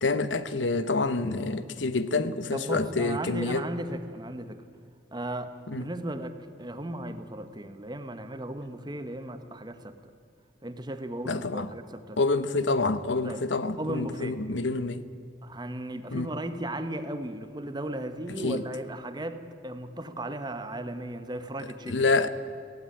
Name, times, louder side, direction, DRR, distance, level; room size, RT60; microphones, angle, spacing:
voice 1, 0.0-3.6 5.7-5.9 11.3-11.7 12.2-15.0 16.1-16.3 18.4-18.6 21.9-22.3, left 3 dB, 75° left, 0.9 m, -27 dB
voice 2, 2.5-4.6 5.1-10.1 10.6-12.2 13.2-13.4 13.8-14.4 15.4-22.1, right 1 dB, 25° right, 1.1 m, -36 dB
16.5 x 16.0 x 9.9 m
head